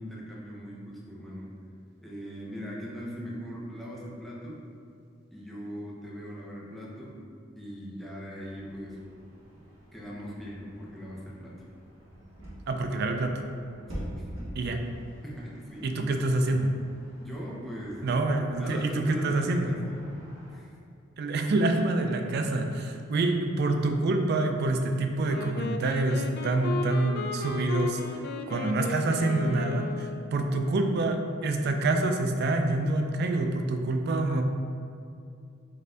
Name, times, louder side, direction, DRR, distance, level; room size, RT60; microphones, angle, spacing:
voice 1, 0.0-1.5 2.0-4.6 5.3-7.2 7.6-9.0 9.9-11.5 13.9-14.3 15.2-15.9 17.2-18.1 18.6-20.2 20.5-20.7, equal, ahead, -6 dB, 0.7 m, -40 dB
sound 1, 8.3-20.6, equal, 85° right, 1.3 m, -46 dB
voice 2, 12.7-13.4 14.5-14.9 15.8-16.7 18.0-19.7 21.2-28.2 28.5-34.4, right 2 dB, 55° right, 5 dB, 0.4 m, -27 dB
Wind instrument woodwind instrument, 25.2-30.4, left 3 dB, 55° left, 0.3 m, -35 dB
4.0 x 2.6 x 3.7 m, 2.4 s
head